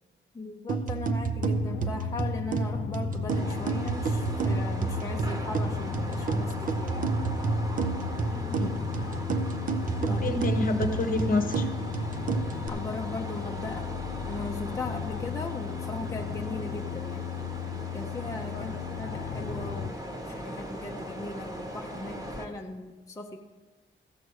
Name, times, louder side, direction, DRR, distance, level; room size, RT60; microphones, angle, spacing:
voice 1, 0.3-7.1 10.1-10.4 12.7-13.9 14.3-17.3 17.9-23.4, left 2 dB, 15° left, 1 dB, 0.6 m, -38 dB
sound 1, 0.7-12.7, right 4 dB, 45° right, 0.6 m, -30 dB
sound 2, 1.4-19.9, left 10 dB, 75° left, 0.5 m, -36 dB
sound 3, 3.3-22.5, right 1 dB, 20° right, 1.1 m, -39 dB
voice 2, 8.3-8.7 10.0-11.7 18.5-18.6, left 2 dB, 45° left, 7 dB, 0.9 m, -29 dB
15.0 x 6.6 x 4.7 m, 1.3 s
wide cardioid pair, 150°, 20 cm